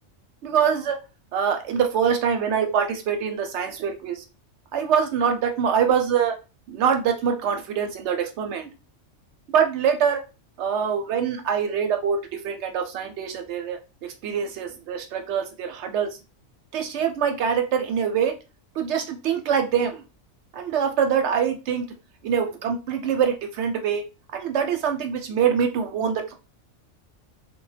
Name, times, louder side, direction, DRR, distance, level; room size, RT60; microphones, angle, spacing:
voice 1, 0.4-1.0 1.3-4.2 4.7-6.3 6.7-8.7 9.5-10.2 10.6-13.8 14.2-16.1 16.7-18.3 18.8-20.0 20.5-21.9 22.2-24.0 24.3-26.3, right 7 dB, 70° right, 5 dB, 0.8 m, -24 dB
2.2 x 2.1 x 3.1 m, 0.30 s
omnidirectional pair, 1.3 m